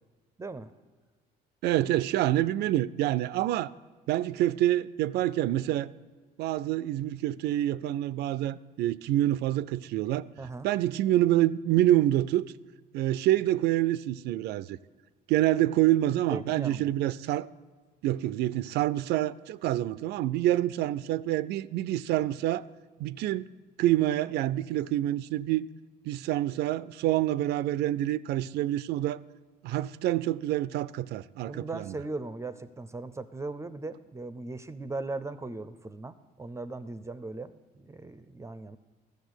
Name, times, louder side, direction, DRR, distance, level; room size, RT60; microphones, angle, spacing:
voice 1, 0.4-0.7 10.4-10.7 16.3-16.9 31.5-38.8, right 3 dB, 15° right, 0.5 m, -38 dB
voice 2, 1.6-3.7 4.1-5.9 6.4-10.3 10.6-12.5 12.9-14.8 15.3-17.5 18.0-22.6 23.0-23.5 23.8-25.7 26.0-29.2 29.6-31.9, right 14 dB, 75° right, 0.4 m, -27 dB
13.5 x 6.6 x 8.0 m
cardioid pair, 110°, 17 cm